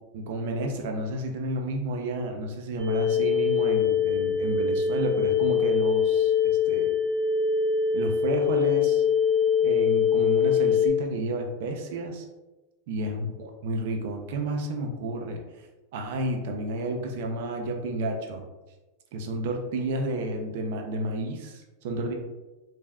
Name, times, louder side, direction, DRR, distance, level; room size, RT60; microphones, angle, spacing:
voice 1, 0.1-6.3 6.7-6.9 7.9-9.0 9.6-12.2 12.9-13.2 13.6-15.4 15.9-18.4 19.1-22.1, right 1 dB, 65° right, 2 dB, 0.6 m, -31 dB
sound 1, 2.8-10.9, left 7 dB, 35° right, 1.2 m, -23 dB
3.3 x 2.5 x 2.3 m, 1.1 s
supercardioid pair, 140°, 0 cm